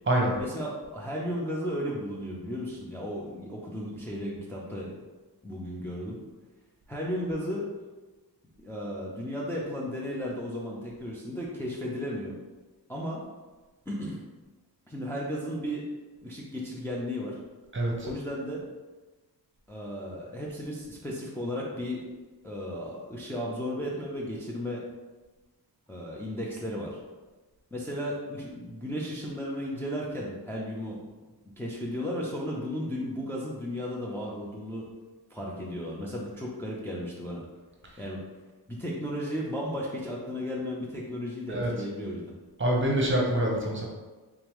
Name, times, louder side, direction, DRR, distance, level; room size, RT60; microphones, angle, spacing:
voice 1, 0.4-4.9 5.4-6.2 6.9-7.7 8.6-12.3 12.9-13.2 13.9-14.2 14.9-15.8 16.2-17.4 18.0-18.6 19.7-22.0 22.4-24.8 25.9-27.0 27.7-31.0 31.6-34.9 35.3-37.4 38.0-38.2 38.7-42.3, equal, 5° left, -5 dB, 0.6 m, -34 dB
voice 2, 17.7-18.1 41.5-41.7 42.6-43.9, right 1 dB, 30° right, -1 dB, 0.9 m, -25 dB
3.5 x 3.4 x 3.1 m, 1.2 s
cardioid pair, 85°, 42 cm